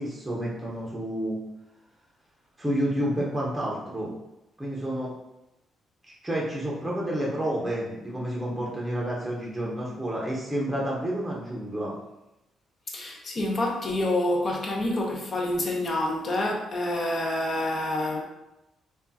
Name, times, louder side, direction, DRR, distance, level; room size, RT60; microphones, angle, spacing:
voice 1, 0.0-1.4 2.6-4.1 4.6-5.1 6.1-12.0, right 1 dB, 10° right, -4 dB, 0.7 m, -30 dB
voice 2, 12.9-18.2, left 1 dB, 40° left, 0 dB, 0.7 m, -27 dB
3.4 x 2.3 x 2.7 m, 0.93 s
cardioid pair, 90°, 0 cm